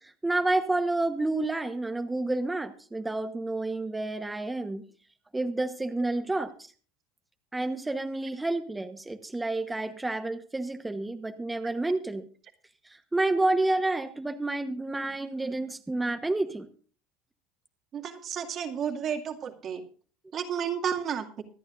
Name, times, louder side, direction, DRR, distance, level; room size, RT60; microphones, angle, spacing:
voice 1, 0.0-4.8 5.3-6.5 7.5-12.3 12.9-16.7, right 2 dB, 10° right, 8 dB, 1.1 m, -29 dB
voice 2, 17.9-19.8 20.3-21.4, right 8 dB, 40° right, 5 dB, 2.2 m, -32 dB
25.0 x 9.2 x 2.5 m, 0.40 s
supercardioid pair, 125°, 0 cm